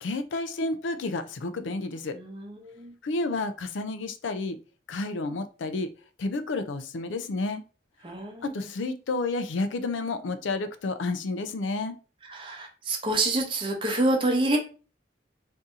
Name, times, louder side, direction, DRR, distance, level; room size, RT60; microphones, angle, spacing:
voice 1, 0.0-2.2 3.0-4.6 4.9-5.9 6.2-7.6 8.4-11.9, left 3 dB, 90° left, 10 dB, 0.4 m, -30 dB
voice 2, 2.1-2.9 8.0-8.7 12.3-14.6, right 2 dB, 30° right, 1 dB, 0.7 m, -27 dB
2.7 x 2.6 x 3.6 m, 0.35 s
head